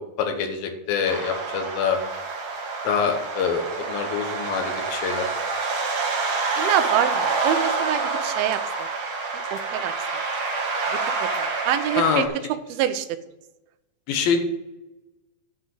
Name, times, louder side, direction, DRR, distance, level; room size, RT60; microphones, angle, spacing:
voice 1, 0.2-2.0 2.8-5.3 12.0-12.3 14.1-14.4, left 6 dB, 75° left, 5 dB, 3.0 m, -25 dB
sound 1, 1.0-12.3, right 4 dB, 55° right, 2.4 m, -27 dB
voice 2, 6.6-8.9 9.5-10.2 10.9-12.2 12.7-13.1, right 11 dB, 90° right, 11 dB, 2.6 m, -26 dB
9.7 x 5.0 x 7.9 m, 0.98 s
omnidirectional pair, 4.2 m